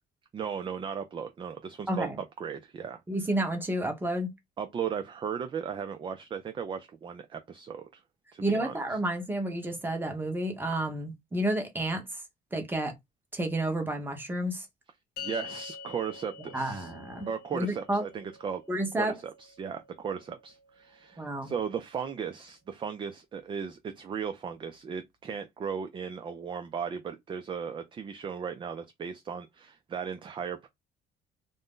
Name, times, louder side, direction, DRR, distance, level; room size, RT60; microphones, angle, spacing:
voice 1, 0.3-2.1 2.4-3.0 4.6-8.0 8.3-8.8 15.2-16.9 17.3-18.6 19.0-30.7, right 7 dB, 30° right, 0.4 m, -36 dB
voice 2, 1.9-2.2 3.1-4.3 8.4-12.2 12.5-12.9 13.3-14.7 16.5-18.0 18.7-19.1 21.2-21.5, right 1 dB, 10° right, 0.9 m, -30 dB
sound 1, 15.2-21.7, left 6 dB, 65° left, 0.7 m, -47 dB
2.6 x 2.1 x 3.6 m
cardioid pair, 110°, 17 cm